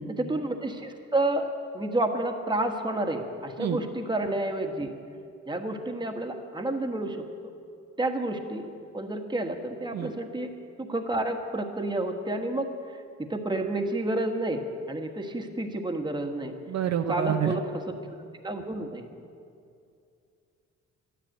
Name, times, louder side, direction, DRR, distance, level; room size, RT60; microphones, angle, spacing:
voice 1, 0.1-1.5 1.7-4.9 5.5-7.2 8.0-10.5 10.8-12.7 13.3-16.5 16.9-18.0 18.4-19.1, right 2 dB, 15° right, 4 dB, 1.5 m, -30 dB
voice 2, 16.7-17.5, right 10 dB, 60° right, 6 dB, 0.8 m, -27 dB
12.5 x 10.0 x 9.0 m, 2.5 s
cardioid pair, 90°, 30 cm